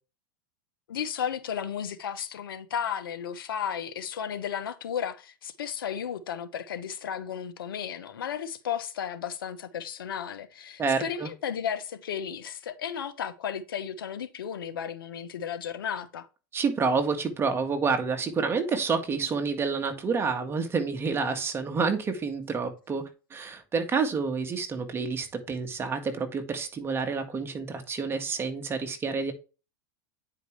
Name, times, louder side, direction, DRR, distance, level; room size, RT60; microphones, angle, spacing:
voice 1, 0.9-16.3, left 8 dB, 85° left, 1.2 m, -34 dB
voice 2, 10.8-11.3 16.5-29.3, right 5 dB, 20° right, 1.7 m, -28 dB
9.4 x 5.0 x 3.3 m
hypercardioid pair, 120°, 11 cm